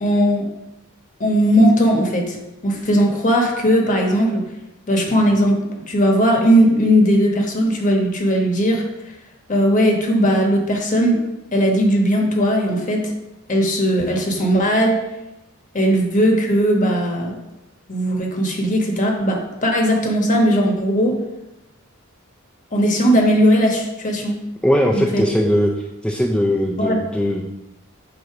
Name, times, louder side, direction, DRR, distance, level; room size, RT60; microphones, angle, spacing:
voice 1, 0.0-0.5 1.2-2.4 2.6-4.4 4.9-5.6 5.9-8.8 9.5-11.2 11.5-13.1 13.5-15.0 15.7-17.4 17.9-21.2 22.7-24.4 24.9-25.2 26.8-27.0, equal, 40° left, 1 dB, 1.1 m, -18 dB
voice 2, 24.6-25.7 26.0-27.5, equal, 5° left, -1 dB, 0.4 m, -19 dB
7.8 x 2.7 x 5.8 m, 0.93 s
head